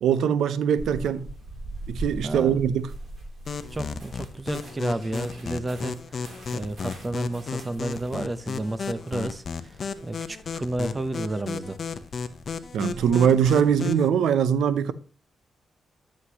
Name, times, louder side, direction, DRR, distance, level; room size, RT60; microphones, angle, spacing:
voice 1, 0.0-1.3 1.9-2.9 12.7-14.9, right 8 dB, 90° right, 0.5 m, -22 dB
sound 1, 0.8-13.2, right 2 dB, 50° right, 3.0 m, -42 dB
voice 2, 2.2-2.6 3.7-6.2 6.5-9.7 10.0-11.8, right 2 dB, 25° right, 0.7 m, -31 dB
sound 2, 3.5-14.1, left 5 dB, 55° left, 0.7 m, -34 dB
9.7 x 6.4 x 2.8 m
cardioid pair, 85°, 0 cm